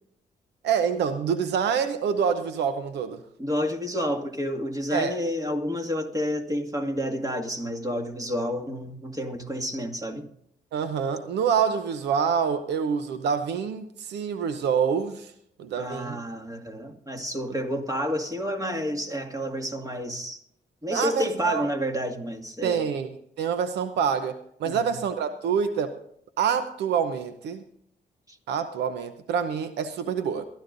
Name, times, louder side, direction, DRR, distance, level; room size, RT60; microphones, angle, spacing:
voice 1, 0.6-3.2 4.9-5.2 10.7-15.3 15.6-16.2 20.9-21.7 22.6-23.1 23.4-25.9 26.4-27.6 28.5-30.4, right 7 dB, 85° right, 0.8 m, -26 dB
voice 2, 3.4-10.3 15.8-20.4 20.8-22.9 24.6-24.9 28.3-28.4, equal, 20° right, 2.1 m, -30 dB
22.5 x 12.5 x 2.6 m
cardioid pair, 60°, 17 cm